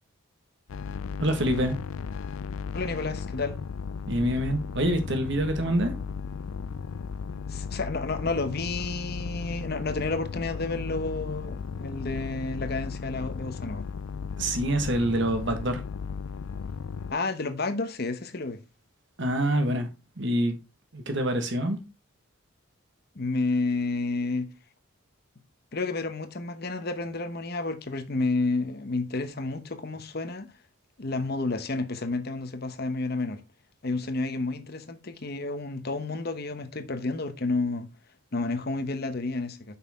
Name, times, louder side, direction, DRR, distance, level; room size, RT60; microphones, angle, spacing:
sound 1, 0.7-17.1, left 5 dB, 75° left, 0.4 m, -35 dB
voice 1, 1.2-1.8 4.1-5.9 14.4-15.8 19.2-19.9 20.2-20.6 20.9-21.8, right 1 dB, 55° right, 1.4 m, -26 dB
voice 2, 2.7-3.6 7.5-13.9 17.1-18.6 23.1-24.5 25.7-30.5 31.0-33.4 33.8-37.9 38.3-39.8, left 3 dB, 45° left, 0.9 m, -30 dB
6.3 x 5.7 x 3.5 m
head